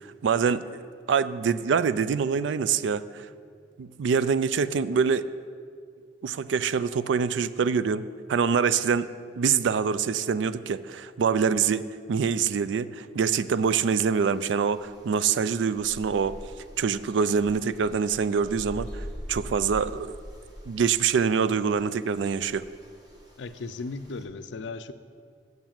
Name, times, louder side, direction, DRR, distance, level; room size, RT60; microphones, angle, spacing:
voice 1, 0.0-0.8 1.1-3.3 3.8-5.3 6.2-16.4 16.8-20.2 20.7-22.7, right 6 dB, 80° right, 15 dB, 0.4 m, -25 dB
sound 1, 13.6-24.2, equal, 20° right, 1.4 m, -44 dB
voice 2, 23.4-24.9, left 3 dB, 80° left, 12 dB, 0.5 m, -36 dB
8.0 x 7.1 x 7.5 m, 2.1 s
head